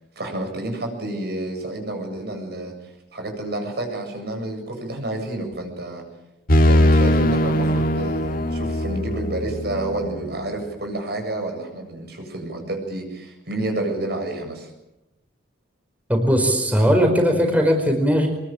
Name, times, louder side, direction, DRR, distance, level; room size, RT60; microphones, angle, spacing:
voice 1, 0.2-2.7 3.1-6.0 6.7-14.7, right 2 dB, 60° right, 4 dB, 7.6 m, -29 dB
sound 1, 6.5-10.3, left 1 dB, 55° left, 1.8 m, -20 dB
voice 2, 16.1-18.3, equal, 10° right, 2 dB, 4.7 m, -18 dB
24.5 x 23.0 x 8.9 m, 0.93 s
head